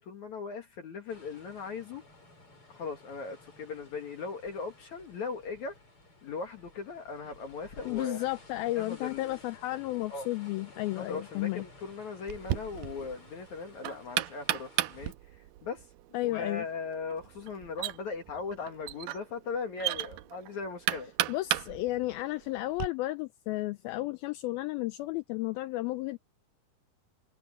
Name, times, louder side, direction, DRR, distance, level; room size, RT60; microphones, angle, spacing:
voice 1, 0.0-2.0 2.7-5.8 6.2-8.3 8.8-9.3 10.1-10.3 10.9-15.9 16.2-21.1, left 5 dB, 55° left, 2.8 m, -39 dB
sound 1, 1.1-15.1, left 2 dB, 35° left, 7.6 m, -55 dB
voice 2, 7.9-11.6 16.1-16.7 21.3-26.2, left 18 dB, 80° left, 2.4 m, -33 dB
Knock, 12.3-22.9, right 14 dB, 80° right, 2.2 m, -36 dB
omnidirectional pair, 4.6 m